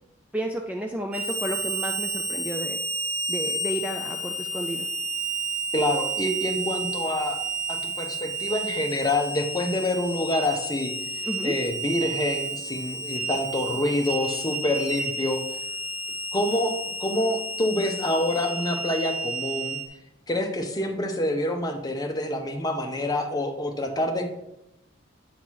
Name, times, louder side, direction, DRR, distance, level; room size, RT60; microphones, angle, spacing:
voice 1, 0.3-2.8 3.3-4.9 11.3-11.5, right 1 dB, 5° right, 2 dB, 0.4 m, -32 dB
Harmonica, 1.1-19.9, right 2 dB, 35° right, 1.9 m, -31 dB
voice 2, 5.7-7.4 7.7-15.4 16.3-19.8 20.3-24.3, left 1 dB, 20° left, 3 dB, 0.8 m, -27 dB
8.3 x 3.9 x 4.7 m, 0.87 s
head